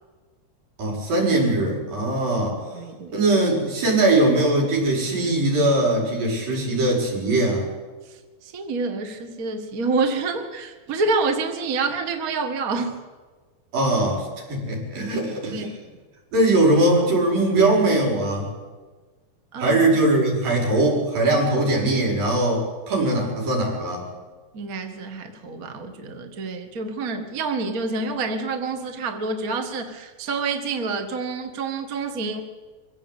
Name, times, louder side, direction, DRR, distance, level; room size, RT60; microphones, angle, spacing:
voice 1, 0.8-2.6 3.1-7.7 13.7-15.7 16.3-18.5 19.6-24.1, right 2 dB, 80° right, -2 dB, 6.8 m, -21 dB
voice 2, 2.7-3.2 8.1-13.0 15.5-15.7 19.5-20.0 24.5-32.4, right 3 dB, 35° right, 5 dB, 1.5 m, -27 dB
24.0 x 16.0 x 8.3 m, 1.4 s
omnidirectional pair, 3.9 m